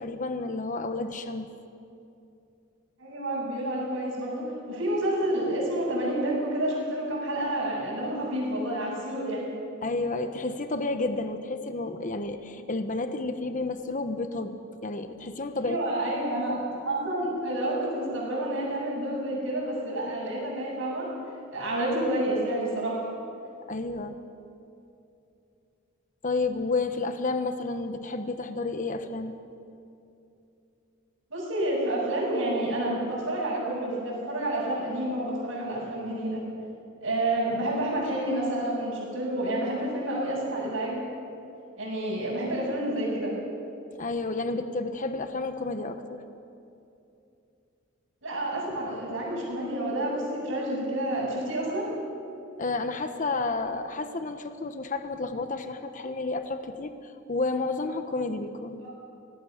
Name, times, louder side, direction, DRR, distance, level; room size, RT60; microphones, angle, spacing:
voice 1, 0.0-1.5 9.8-14.5 14.8-15.8 23.7-24.1 26.2-29.4 44.0-46.2 52.6-58.8, left 3 dB, 40° left, 8 dB, 1.1 m, -31 dB
voice 2, 3.0-9.5 15.6-21.1 21.5-23.0 31.3-36.4 37.0-41.0 41.8-43.4 48.2-51.9 58.8-58.9, right 1 dB, 80° right, -9 dB, 6.6 m, -29 dB
25.0 x 18.5 x 6.7 m, 2.7 s
head